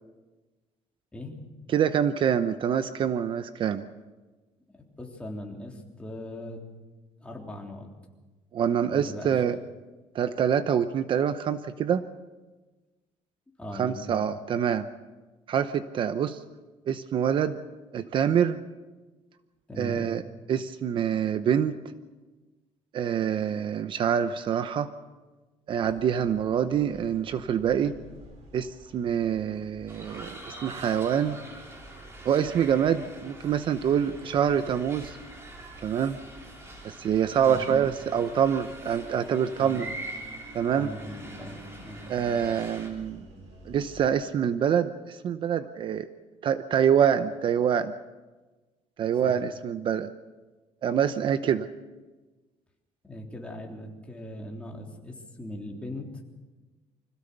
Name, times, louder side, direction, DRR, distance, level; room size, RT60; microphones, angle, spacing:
voice 1, 1.7-3.8 8.5-9.6 10.1-12.0 13.8-14.9 15.5-16.4 16.9-17.6 17.9-18.6 19.8-20.2 20.5-21.8 22.9-24.9 25.7-27.9 28.5-31.4 32.2-35.2 35.8-36.2 36.8-39.9 40.5-40.9 42.1-43.3 43.7-46.1 46.4-47.9 49.0-50.1 50.8-51.7, right 8 dB, 45° right, 11 dB, 0.8 m, -26 dB
voice 2, 4.7-6.6 7.2-7.9 8.9-9.3 13.6-14.1 19.7-20.0 27.8-28.0 37.3-37.7 39.6-39.8 40.8-42.0 49.2-49.4 53.0-56.1, left 1 dB, 10° left, 0 dB, 3.5 m, -40 dB
sound 1, 25.7-44.1, right 1 dB, 70° right, 7.6 m, -51 dB
sound 2, 29.9-42.9, right 2 dB, 20° right, 4.5 m, -44 dB
25.5 x 16.5 x 6.9 m, 1.2 s
cardioid pair, 135°, 11 cm